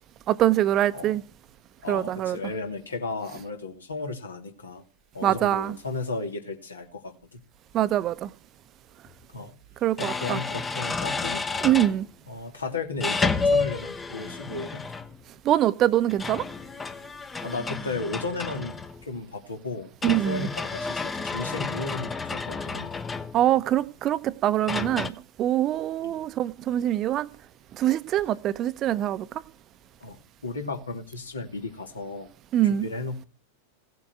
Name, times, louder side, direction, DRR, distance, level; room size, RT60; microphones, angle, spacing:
voice 1, 0.3-1.2 1.9-2.4 5.2-5.8 7.7-8.3 9.8-10.4 11.6-12.1 15.4-16.5 20.0-20.5 23.3-27.3 27.7-29.3 32.5-32.9, right 12 dB, 30° right, 0.8 m, -24 dB
voice 2, 1.8-4.8 5.1-7.4 9.3-9.5 10.0-11.4 12.3-14.9 17.4-23.0 26.0-26.2 30.0-32.3 32.6-33.3, left 3 dB, 75° left, 2.9 m, -34 dB
sound 1, 9.1-9.2 10.0-12.0 13.0-15.2 16.1-19.1 20.0-23.6 24.7-25.1, left 4 dB, 15° left, 1.0 m, -30 dB
17.0 x 7.9 x 9.2 m
figure-of-eight pair, 90°, 0 cm